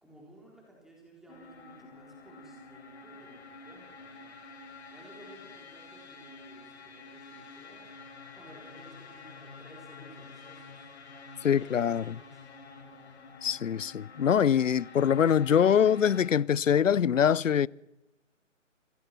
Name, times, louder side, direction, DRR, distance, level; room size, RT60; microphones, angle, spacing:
voice 1, 0.0-4.3 4.9-7.9 8.3-10.9 11.4-12.4, right 1 dB, ahead, 3.9 m, -55 dB
sound 1, 1.3-16.3, left 4 dB, 55° left, 4.2 m, -49 dB
voice 2, 11.4-12.1 13.4-17.7, left 8 dB, 75° left, 0.6 m, -24 dB
26.0 x 18.0 x 6.0 m
figure-of-eight pair, 145°, 39 cm